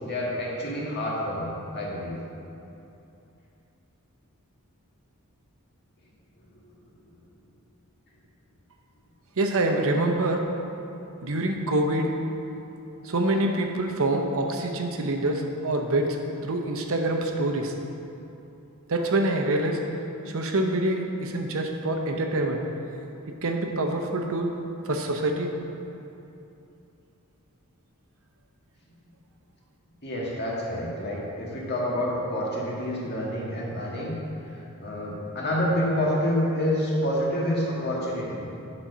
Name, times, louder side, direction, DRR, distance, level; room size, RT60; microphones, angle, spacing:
voice 1, 0.0-2.2 7.1-7.2 30.0-34.1 34.8-38.5, equal, 50° left, -4 dB, 1.6 m, -28 dB
voice 2, 9.4-10.4 11.2-12.1 13.0-16.2 16.4-17.7 18.9-19.8 20.3-22.6 23.4-24.5 24.9-25.5, right 2 dB, 65° right, 3 dB, 0.8 m, -25 dB
8.5 x 4.3 x 5.5 m, 2.8 s
head